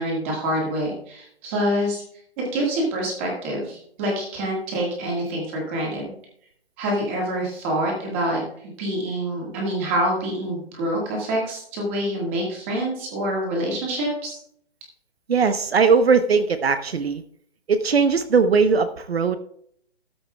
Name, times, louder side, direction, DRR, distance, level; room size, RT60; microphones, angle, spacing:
voice 1, 0.0-2.0 2.4-6.0 6.8-8.4 8.8-14.4, right 1 dB, 10° right, -2 dB, 1.8 m, -26 dB
voice 2, 15.3-17.2 17.7-19.4, right 5 dB, 65° right, 10 dB, 0.9 m, -19 dB
13.5 x 12.5 x 2.3 m, 0.67 s
hypercardioid pair, 180°, 33 cm